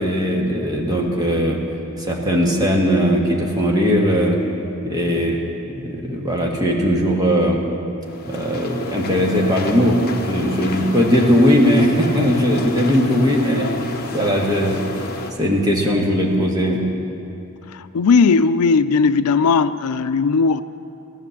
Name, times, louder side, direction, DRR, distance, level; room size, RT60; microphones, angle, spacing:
voice 1, 0.0-1.6 2.0-4.4 4.8-5.4 5.7-7.6 8.2-13.7 14.1-14.8 15.4-16.8, equal, 15° right, -1 dB, 1.6 m, -18 dB
sound 1, 8.0-15.3, left 2 dB, 45° left, 1.0 m, -30 dB
voice 2, 17.7-20.6, left 4 dB, 90° left, 13 dB, 0.4 m, -17 dB
15.0 x 11.0 x 7.2 m, 2.7 s
head